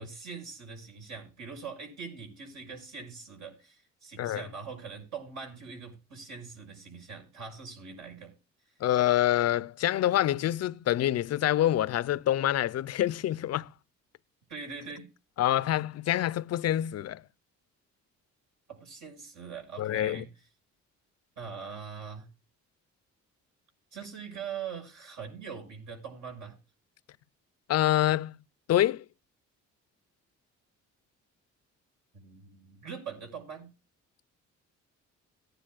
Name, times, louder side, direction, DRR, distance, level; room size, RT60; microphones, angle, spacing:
voice 1, 0.0-8.3 14.5-15.1 18.7-20.3 21.4-22.3 23.9-26.5 32.1-33.7, right 6 dB, 70° right, 6.5 m, -42 dB
voice 2, 8.8-13.7 15.4-17.2 19.8-20.2 27.7-28.3 28.7-29.0, left 13 dB, 55° left, 0.5 m, -26 dB
19.0 x 10.0 x 2.4 m
cardioid pair, 90°, 30 cm